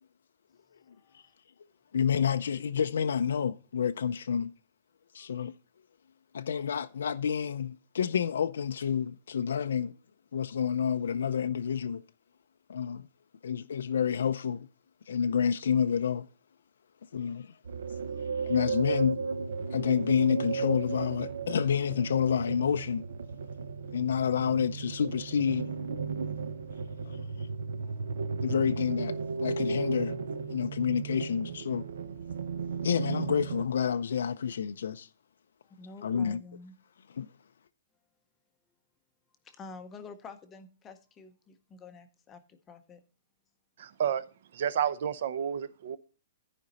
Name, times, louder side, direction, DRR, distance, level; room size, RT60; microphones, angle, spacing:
voice 1, 0.8-1.3 5.2-5.3 17.3-17.4 35.7-36.7 39.4-43.0, left 4 dB, 10° left, 0.6 m, -49 dB
voice 2, 1.9-4.5 5.1-5.5 6.3-9.9 10.3-12.0 12.7-13.1 13.4-14.7 15.1-16.3 17.1-17.5 17.9-18.0 18.4-19.2 19.7-23.1 23.9-25.7 27.0-27.5 28.4-30.2 30.5-31.8 32.8-35.1 36.0-36.4 37.2-37.3, left 7 dB, 85° left, 0.5 m, -29 dB
sound 1, 17.6-33.7, right 5 dB, 75° right, 0.9 m, -35 dB
voice 3, 43.8-44.2 44.5-46.0, right 8 dB, 45° right, 0.7 m, -30 dB
13.5 x 5.1 x 4.0 m
hypercardioid pair, 180°, 0 cm